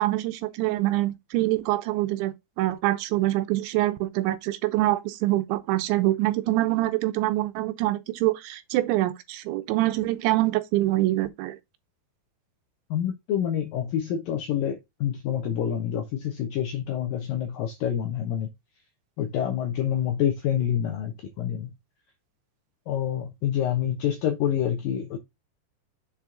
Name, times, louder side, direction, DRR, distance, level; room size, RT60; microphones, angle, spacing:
voice 1, 0.0-11.6, right 16 dB, 85° right, 3.1 m, -25 dB
voice 2, 12.9-18.5 19.2-21.7 22.9-25.2, left 9 dB, 75° left, 2.0 m, -27 dB
7.2 x 4.7 x 3.8 m
omnidirectional pair, 5.2 m